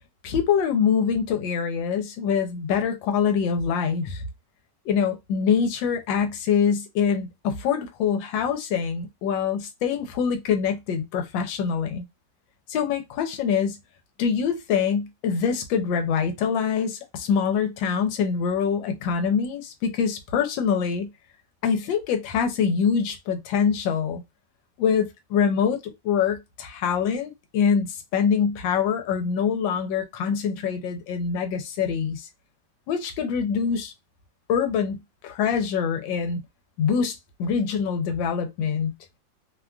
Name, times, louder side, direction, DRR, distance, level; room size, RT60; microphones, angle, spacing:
voice 1, 0.2-4.2 4.9-12.0 12.7-13.8 14.2-21.1 21.6-24.2 24.8-25.8 26.0-32.3 32.9-33.9 34.5-35.0 35.2-36.4 36.8-38.9, left 7 dB, 90° left, 1.3 m, -24 dB
3.2 x 2.2 x 2.4 m
omnidirectional pair, 2.0 m